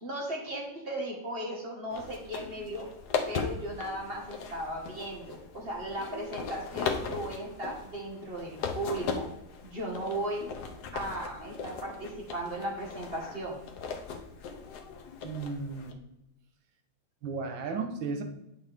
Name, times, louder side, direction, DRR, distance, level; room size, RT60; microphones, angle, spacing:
voice 1, 0.0-2.9 3.3-9.3 9.6-10.5 10.9-13.6, right 1 dB, 30° right, -1 dB, 1.8 m, -36 dB
sound 1, 1.9-15.9, left 5 dB, 65° left, 1.3 m, -38 dB
voice 2, 15.2-16.0 17.2-18.2, right 4 dB, 80° right, 6 dB, 1.7 m, -34 dB
8.6 x 6.3 x 3.5 m, 0.91 s
omnidirectional pair, 2.1 m